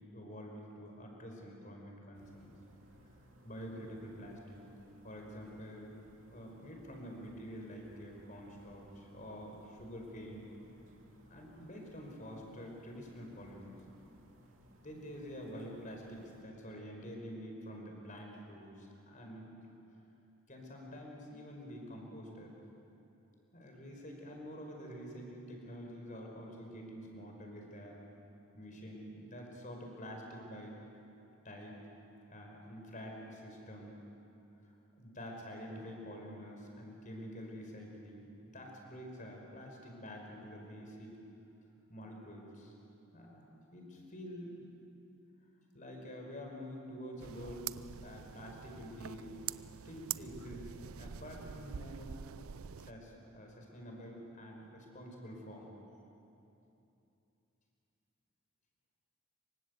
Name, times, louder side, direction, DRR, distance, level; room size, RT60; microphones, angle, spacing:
voice 1, 0.0-2.5 3.4-4.6 5.0-6.0 6.3-10.5 11.3-13.8 14.8-19.5 20.5-22.5 23.5-28.0 28.5-30.8 31.4-31.8 32.3-34.0 34.6-41.2 41.9-42.7 43.1-43.4 43.7-44.7 45.7-49.4 49.8-50.7 51.0-52.1 52.8-55.7, equal, 35° left, 1 dB, 5.3 m, -47 dB
sound 1, 2.1-16.4, right 1 dB, 65° right, 2.7 m, -63 dB
sound 2, 47.2-52.9, right 9 dB, 85° right, 0.5 m, -45 dB
26.5 x 24.5 x 8.4 m, 2.9 s
head